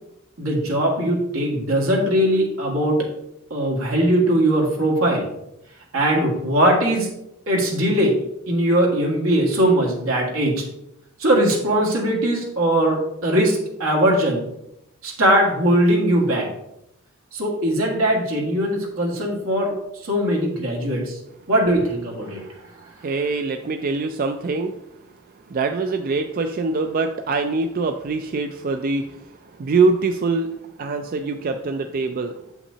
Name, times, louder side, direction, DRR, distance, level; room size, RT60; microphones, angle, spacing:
voice 1, 0.4-3.0 3.5-5.3 5.9-7.1 7.5-8.2 8.5-10.6 11.2-14.5 15.0-16.5 17.3-19.7 20.0-21.2 21.5-22.4, right 1 dB, 80° right, 0 dB, 1.8 m, -20 dB
voice 2, 23.0-24.7 25.5-29.2 29.6-30.5 30.8-32.4, right 3 dB, 45° right, 7 dB, 0.4 m, -23 dB
8.1 x 5.8 x 2.8 m, 0.83 s
head